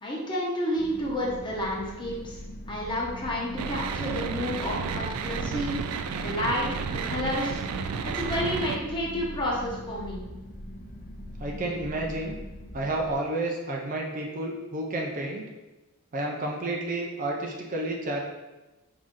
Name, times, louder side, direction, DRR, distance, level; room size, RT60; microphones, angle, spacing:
voice 1, 0.0-2.4 2.7-5.8 6.2-7.6 8.0-10.2, equal, 20° left, -4 dB, 0.9 m, -30 dB
sound 1, 0.8-13.1, equal, 35° left, 0.5 m, -41 dB
sound 2, 3.6-8.8, right 6 dB, 85° right, 0.3 m, -32 dB
voice 2, 11.4-12.4 12.7-15.4 16.1-18.2, right 2 dB, 35° right, -1 dB, 0.5 m, -30 dB
4.9 x 2.7 x 3.7 m, 1.1 s
head